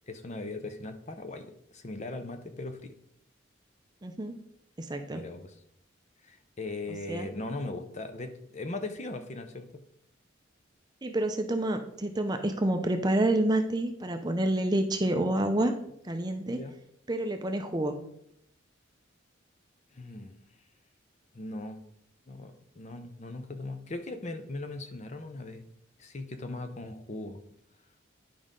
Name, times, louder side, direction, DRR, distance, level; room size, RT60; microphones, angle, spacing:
voice 1, 0.1-2.9 5.1-5.6 6.2-9.8 16.4-16.7 19.9-20.4 21.3-21.8 22.3-25.7 26.0-27.4, left 2 dB, 35° left, 8 dB, 0.6 m, -39 dB
voice 2, 4.0-4.3 4.8-5.2 7.1-7.3 11.0-15.7 16.0-16.6 17.1-17.9, right 1 dB, 20° right, 6 dB, 0.5 m, -28 dB
10.5 x 5.2 x 3.7 m, 0.75 s
head